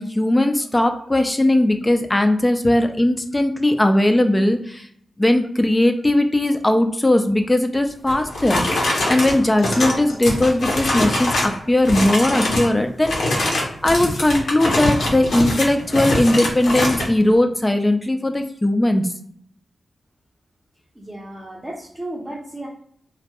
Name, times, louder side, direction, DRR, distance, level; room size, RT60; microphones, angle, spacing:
voice 1, 0.0-4.9 5.2-8.6 9.1-19.1, left 1 dB, 20° left, 6 dB, 0.3 m, -19 dB
sound 1, 8.1-11.6 11.8-12.7 13.0-17.1, left 1 dB, 85° left, 0.7 m, -23 dB
voice 2, 20.9-22.7, right 1 dB, 20° right, -4 dB, 0.6 m, -34 dB
2.2 x 2.1 x 2.8 m, 0.66 s
cardioid pair, 60°, 0 cm